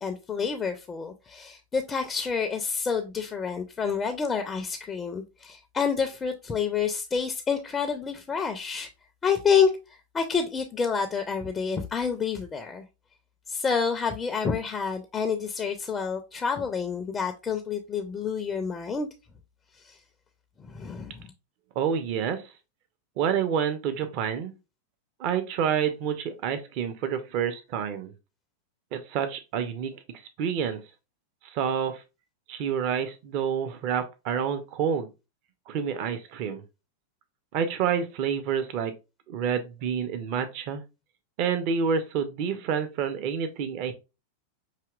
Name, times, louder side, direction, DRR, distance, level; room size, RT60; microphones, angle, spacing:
voice 1, 0.0-8.9 9.2-9.7 10.1-12.8 13.5-19.1 19.8-20.0 20.6-21.3, left 6 dB, 20° left, 0.5 m, -28 dB
voice 2, 21.8-22.4 23.2-24.5 25.2-28.1 28.9-30.0 30.4-30.8 31.5-32.0 32.5-35.1 35.7-36.6 37.5-38.9 39.3-40.8 41.4-43.9, right 7 dB, 45° right, 0.6 m, -28 dB
5.7 x 2.8 x 2.4 m
figure-of-eight pair, 90°, 0 cm